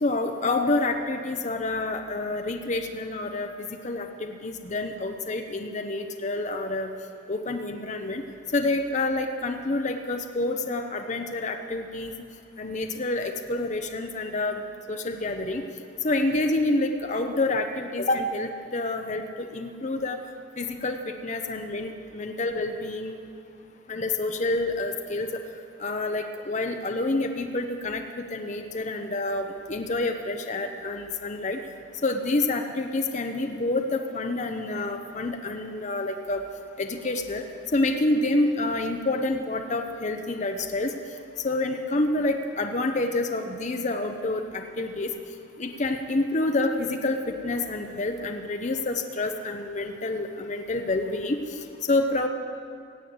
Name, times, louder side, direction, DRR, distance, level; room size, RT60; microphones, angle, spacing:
voice 1, 0.0-3.5 3.8-6.9 7.3-8.2 8.5-12.1 12.6-14.6 14.9-15.6 16.0-20.2 20.6-23.2 23.9-25.3 25.8-31.6 32.0-36.4 36.8-37.4 37.7-40.9 41.4-45.1 45.6-47.2 47.4-51.4 51.9-52.3, left 2 dB, 35° left, 5 dB, 0.7 m, -28 dB
17.5 x 7.7 x 7.9 m, 2.5 s
head